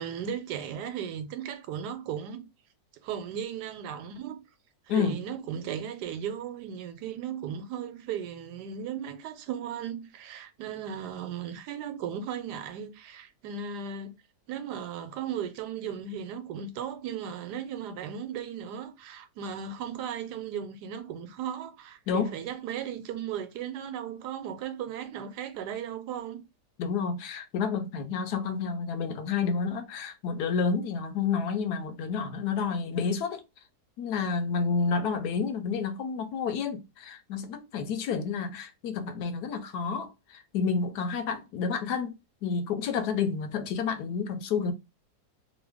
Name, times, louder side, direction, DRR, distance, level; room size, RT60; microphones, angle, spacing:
voice 1, 0.0-2.4 3.0-4.4 4.9-14.1 14.5-26.4, right 8 dB, 90° right, 1.2 m, -36 dB
voice 2, 4.9-5.2 22.1-22.3 26.8-33.4 34.0-42.1 42.4-44.7, left 5 dB, 75° left, 1.2 m, -30 dB
3.0 x 2.2 x 3.3 m
omnidirectional pair, 1.7 m